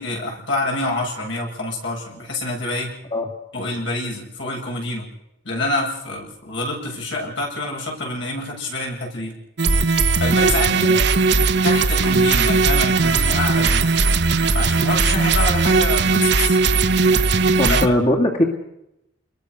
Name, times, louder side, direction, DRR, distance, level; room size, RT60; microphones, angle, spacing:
voice 1, 0.0-2.9 3.5-5.1 5.4-9.3 10.2-10.9 11.5-13.9 14.5-16.6 17.7-17.8, left 2 dB, 75° left, -1 dB, 7.9 m, -26 dB
sound 1, 9.6-17.9, right 4 dB, 60° right, 1.1 m, -18 dB
voice 2, 17.6-18.4, left 1 dB, 35° left, 0 dB, 2.4 m, -19 dB
28.5 x 21.5 x 6.5 m, 0.87 s
head